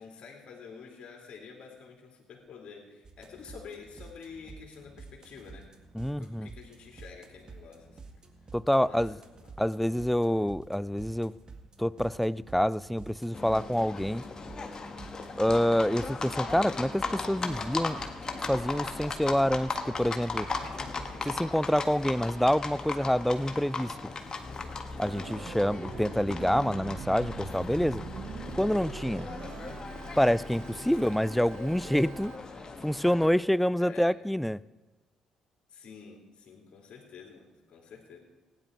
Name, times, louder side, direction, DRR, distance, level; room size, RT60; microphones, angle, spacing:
voice 1, 0.0-5.7 6.0-8.1 8.7-9.5 20.6-21.3 30.7-31.3 33.8-34.1 35.7-38.2, left 5 dB, 55° left, 3.2 m, -48 dB
sound 1, 3.0-21.4, right 4 dB, 40° right, 1.7 m, -50 dB
voice 2, 5.9-6.5 8.5-9.2 9.6-11.3 11.8-14.3 15.3-18.0 18.5-20.5 21.3-23.9 25.0-28.0 28.6-29.3 30.2-32.3 32.8-34.6, equal, 5° left, 0.4 m, -27 dB
Livestock farm animals working animals, 13.3-33.3, left 3 dB, 35° left, 1.6 m, -38 dB
Organ, 25.0-32.4, right 8 dB, 60° right, 0.7 m, -44 dB
16.0 x 10.0 x 4.6 m
hypercardioid pair, 50°, 2 cm